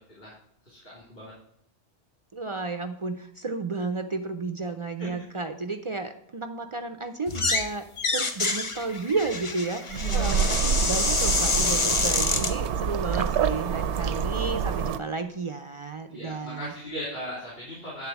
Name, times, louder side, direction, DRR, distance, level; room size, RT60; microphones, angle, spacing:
voice 1, 0.7-1.3 5.0-5.1 9.9-10.5 16.1-18.1, equal, 55° left, -8 dB, 3.5 m, -37 dB
voice 2, 2.3-7.9 8.1-16.7, right 3 dB, 45° right, 7 dB, 0.4 m, -32 dB
sound 1, 7.3-7.7 8.0-12.5, left 3 dB, 30° left, 0.7 m, -27 dB
sound 2, 9.9-15.0, right 7 dB, 75° right, 0.9 m, -27 dB
9.8 x 3.9 x 6.9 m, 0.71 s
omnidirectional pair, 1.2 m